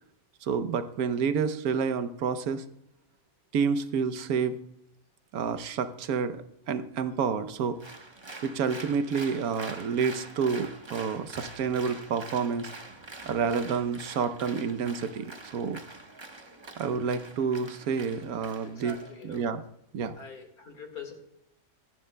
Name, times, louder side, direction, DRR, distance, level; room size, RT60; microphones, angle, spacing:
voice 1, 0.4-2.6 3.5-4.5 5.3-7.8 8.4-12.7 13.3-15.8 16.8-19.0 19.2-19.6 19.9-20.1, right 6 dB, 80° right, 11 dB, 1.2 m, -29 dB
Applause, 7.8-19.4, right 2 dB, 20° right, 0.9 m, -45 dB
voice 2, 18.6-19.4 20.2-21.1, left 5 dB, 85° left, 4 dB, 2.3 m, -44 dB
24.5 x 10.5 x 2.2 m, 0.83 s
omnidirectional pair, 1.5 m